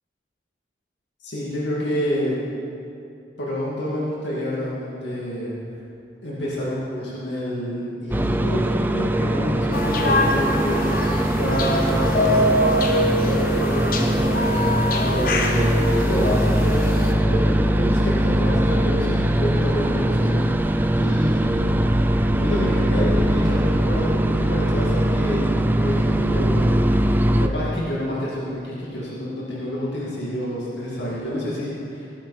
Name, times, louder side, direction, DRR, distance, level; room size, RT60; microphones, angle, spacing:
voice 1, 1.2-2.4 3.4-5.5 6.2-12.8 13.2-15.8 16.0-16.8 17.2-21.3 22.2-25.4 25.8-26.9 27.4-32.1, equal, 85° left, -6 dB, 2.4 m, -28 dB
sound 1, 8.1-27.5, right 1 dB, 10° right, 0.4 m, -21 dB
sound 2, 9.7-17.1, left 1 dB, 55° left, 1.1 m, -24 dB
17.5 x 10.0 x 4.3 m, 2.6 s
head